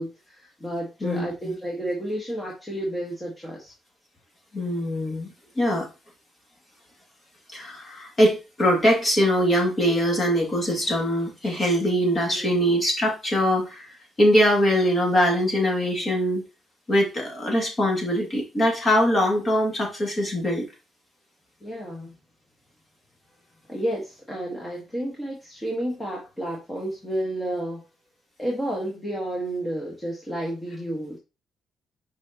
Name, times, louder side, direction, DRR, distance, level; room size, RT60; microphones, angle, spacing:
voice 1, 0.0-3.7 12.2-12.7 21.6-22.1 23.7-27.8 28.4-31.2, right 1 dB, 10° left, -3 dB, 1.5 m, -31 dB
voice 2, 1.0-1.5 4.5-5.9 7.5-16.4 16.9-20.7, equal, 30° left, 0 dB, 2.3 m, -22 dB
6.2 x 5.3 x 2.9 m, 0.29 s
cardioid pair, 130°, 0 cm